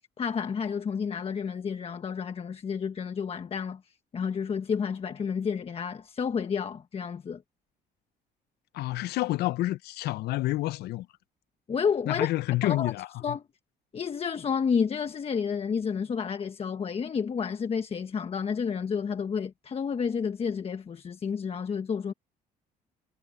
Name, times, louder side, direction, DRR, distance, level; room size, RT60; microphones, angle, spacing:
voice 1, 0.2-7.4 11.7-12.3 12.6-12.9 13.2-13.4 13.9-22.1, left 6 dB, 35° left, 1.2 m, -30 dB
voice 2, 8.7-11.1 12.1-13.4, left 17 dB, 75° left, 0.6 m, -29 dB
cardioid pair, 110°, 17 cm